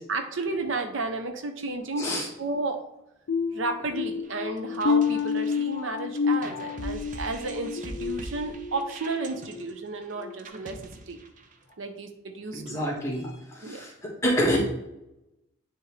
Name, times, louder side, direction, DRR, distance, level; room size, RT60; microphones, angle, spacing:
voice 1, 0.1-2.8 3.5-10.8 11.1-11.2 11.8-12.9 13.6-13.8, right 3 dB, 70° right, 7 dB, 0.7 m, -32 dB
sound 1, 3.3-8.9 9.4-9.7 10.2-10.4, left 5 dB, 65° left, 0.4 m, -29 dB
sound 2, 4.2-11.7, right 2 dB, 40° right, 0.6 m, -43 dB
voice 2, 12.5-14.6, equal, 15° left, -2 dB, 1.6 m, -28 dB
9.5 x 3.5 x 3.2 m, 0.90 s
head